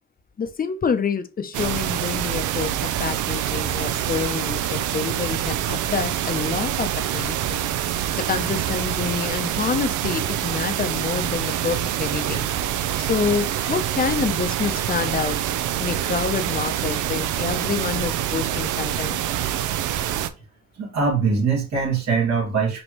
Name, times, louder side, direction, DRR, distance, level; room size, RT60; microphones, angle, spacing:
voice 1, 0.4-7.7 8.2-12.5 13.0-15.4 15.8-19.2, left 6 dB, 30° left, 8 dB, 0.7 m, -27 dB
sound 1, 1.5-20.3, right 11 dB, 80° right, 0.5 m, -26 dB
voice 2, 20.8-22.8, right 5 dB, 60° right, -1 dB, 2.2 m, -22 dB
5.3 x 3.0 x 3.0 m, 0.32 s
cardioid pair, 90°, 30 cm